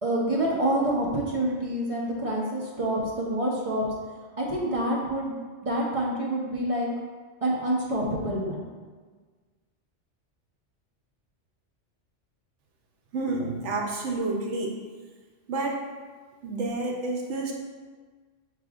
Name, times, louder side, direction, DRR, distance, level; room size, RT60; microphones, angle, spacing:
voice 1, 0.0-3.8 4.4-5.4 5.6-6.9 7.4-8.6, right 1 dB, 35° right, -4 dB, 0.7 m, -27 dB
voice 2, 13.1-14.7 15.5-15.8 16.4-17.5, right 2 dB, 80° right, 1 dB, 1.0 m, -29 dB
5.8 x 3.3 x 2.4 m, 1.5 s
omnidirectional pair, 1.2 m